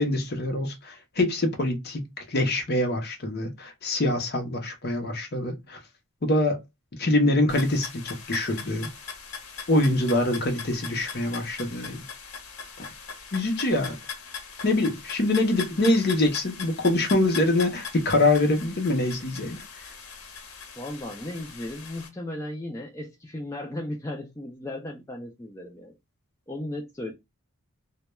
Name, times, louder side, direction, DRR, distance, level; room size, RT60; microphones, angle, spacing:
voice 1, 0.0-5.8 6.2-6.6 7.0-8.9 9.7-12.0 12.8-12.9 13.3-14.0 14.6-19.6, left 2 dB, 45° left, 0.6 m, -24 dB
sound 1, 7.5-22.1, left 6 dB, 85° left, 0.7 m, -40 dB
voice 2, 20.8-26.0 26.5-27.1, left 1 dB, 15° left, 0.3 m, -36 dB
2.2 x 2.1 x 2.9 m
head